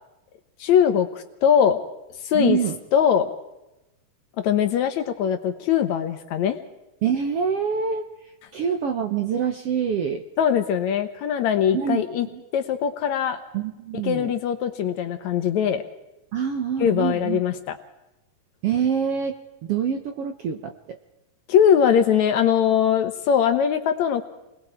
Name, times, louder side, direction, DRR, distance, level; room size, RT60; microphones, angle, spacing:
voice 1, 0.6-1.8 2.2-2.6 2.9-3.3 4.4-6.6 10.4-12.3 12.5-13.4 14.0-15.8 16.8-17.8 21.5-24.3, left 8 dB, 65° left, 9 dB, 2.1 m, -21 dB
voice 2, 2.3-2.8 7.0-10.2 11.7-12.0 12.3-12.4 13.5-14.3 16.3-17.4 18.6-19.4 19.6-21.0, right 7 dB, 65° right, 6 dB, 1.5 m, -26 dB
29.5 x 21.0 x 4.5 m, 0.95 s
omnidirectional pair, 3.9 m